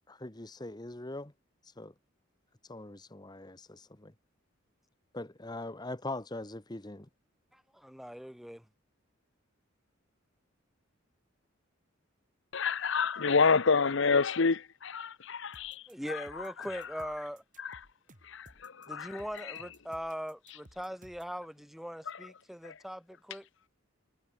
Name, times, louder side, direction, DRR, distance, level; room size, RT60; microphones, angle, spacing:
voice 1, 0.1-1.3 1.6-1.9 2.7-4.1 5.1-7.1, left 2 dB, 20° left, 1.2 m, -42 dB
voice 2, 7.5-8.6 15.9-17.4 18.9-23.5, equal, ahead, 1.3 m, -41 dB
voice 3, 12.5-15.8 17.6-17.8 18.3-19.1, left 5 dB, 60° left, 0.8 m, -28 dB
sound 1, 15.5-21.4, right 1 dB, 40° right, 6.9 m, -58 dB
head